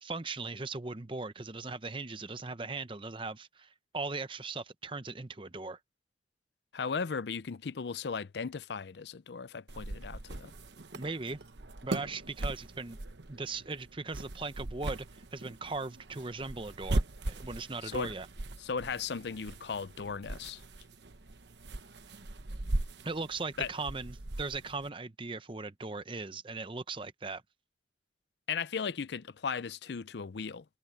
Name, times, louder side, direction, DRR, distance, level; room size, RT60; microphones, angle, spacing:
voice 1, 0.0-5.8 10.9-11.4 11.8-13.0 13.3-15.1 15.3-17.0 17.3-18.3 23.0-27.4, right 3 dB, 30° right, 0.8 m, -38 dB
voice 2, 6.7-10.5 17.8-18.1 18.6-20.6 23.6-23.7 28.5-30.6, left 5 dB, 70° left, 0.5 m, -36 dB
sound 1, 9.7-24.9, right 2 dB, 75° right, 1.1 m, -39 dB
head